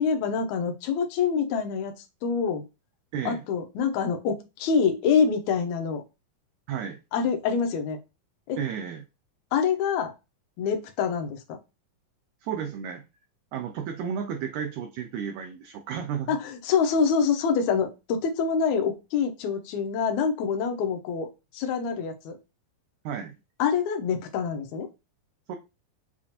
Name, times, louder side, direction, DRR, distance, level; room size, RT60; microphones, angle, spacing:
voice 1, 0.0-1.9 2.2-2.6 3.3-6.0 7.1-8.0 8.5-8.6 9.5-10.1 10.6-11.6 16.3-22.4 23.6-24.9, left 6 dB, 75° left, 5 dB, 1.8 m, -26 dB
voice 2, 3.1-3.4 6.7-7.0 8.6-9.0 12.4-13.0 13.5-16.4 23.0-23.3 25.5-25.6, right 8 dB, 85° right, 5 dB, 1.7 m, -32 dB
7.1 x 2.4 x 2.8 m, 0.26 s
omnidirectional pair, 4.0 m